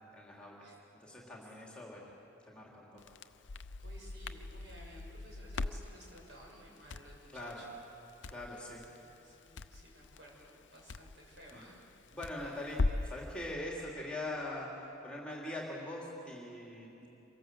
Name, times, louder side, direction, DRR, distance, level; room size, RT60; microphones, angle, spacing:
voice 1, 0.1-0.7 1.0-2.0 2.5-3.1 7.3-7.6 8.3-8.8 11.5-11.6 12.1-14.7 15.0-17.1, left 1 dB, 5° left, -3 dB, 3.2 m, -42 dB
Crackle, 3.0-13.2, left 3 dB, 60° left, 0.6 m, -41 dB
voice 2, 3.8-7.7 8.3-11.8 12.4-12.5, right 1 dB, 60° right, -2 dB, 6.6 m, -56 dB
26.5 x 23.0 x 7.7 m, 3.0 s
head